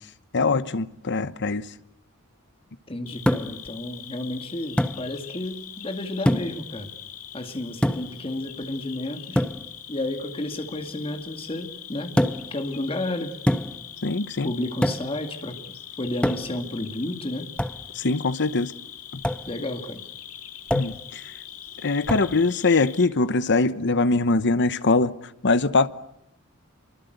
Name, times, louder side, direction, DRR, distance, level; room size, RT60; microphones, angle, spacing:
voice 1, 0.3-1.6 14.0-14.5 18.0-18.7 20.7-21.2 21.8-25.1 25.4-25.9, left 3 dB, 55° left, 1.0 m, -22 dB
voice 2, 2.9-6.9 7.3-9.4 9.9-12.2 12.5-13.4 14.4-15.6 16.0-17.5 19.5-20.0, left 1 dB, 25° left, 2.3 m, -31 dB
Cricket, 3.1-23.1, left 11 dB, 75° left, 2.4 m, -42 dB
sound 1, 3.3-3.7 4.8-5.0 6.3-6.6 7.8-8.2 9.4-9.6 12.2-12.6 13.5-13.9 14.8-15.2 16.2-16.6 17.6-17.8 19.2-19.5 20.7-21.0 22.1-22.3, equal, 5° left, 0.9 m, -24 dB
26.5 x 23.5 x 8.1 m
head